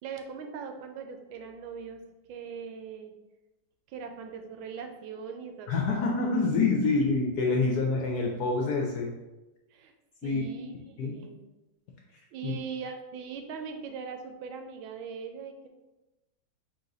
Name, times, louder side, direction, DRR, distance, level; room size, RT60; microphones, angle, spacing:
voice 1, 0.0-2.0 2.3-3.1 3.9-6.2 9.7-9.9 10.2-11.4 12.3-15.7, right 6 dB, 90° right, 5 dB, 1.4 m, -40 dB
voice 2, 5.7-9.1 10.2-10.4 11.0-11.1 12.4-12.5, left 3 dB, 70° left, 0 dB, 1.0 m, -26 dB
3.9 x 2.9 x 3.9 m, 1.0 s
omnidirectional pair, 2.1 m